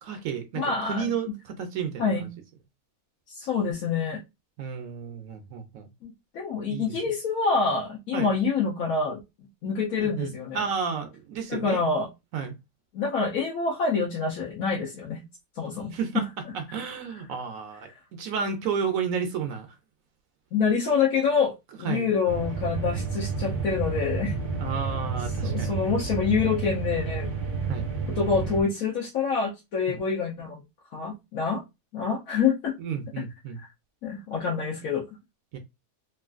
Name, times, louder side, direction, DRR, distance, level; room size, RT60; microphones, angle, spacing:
voice 1, 0.0-2.3 4.6-5.9 6.7-7.0 8.1-8.3 10.0-11.8 12.3-12.6 15.9-16.3 16.5-19.8 21.8-22.1 24.6-25.8 27.7-27.9 29.9-30.0 32.8-33.6 35.5-35.6, right 6 dB, 75° right, 1.0 m, -32 dB
voice 2, 0.5-1.0 2.0-2.3 3.3-4.2 6.0-9.2 9.6-10.6 11.5-12.1 12.9-15.2 15.6-16.2 20.5-21.5 21.8-24.3 25.4-27.4 28.1-30.6 30.9-31.6 31.9-32.7 33.6-33.7 34.0-35.0, left 5 dB, 80° left, 1.1 m, -26 dB
sound 1, 22.3-28.6, right 4 dB, 30° right, 0.5 m, -30 dB
3.0 x 2.5 x 2.4 m
omnidirectional pair, 1.5 m